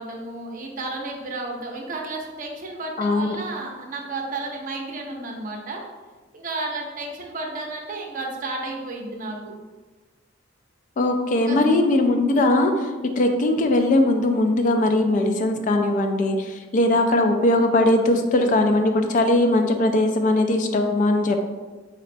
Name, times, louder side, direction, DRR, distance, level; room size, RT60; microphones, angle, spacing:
voice 1, 0.0-5.8 6.3-9.5 11.3-11.8, right 2 dB, 45° right, 0 dB, 0.6 m, -32 dB
voice 2, 3.0-3.4 11.0-12.9 13.2-21.4, left 1 dB, 40° left, 5 dB, 0.3 m, -20 dB
3.9 x 3.1 x 2.5 m, 1.3 s
head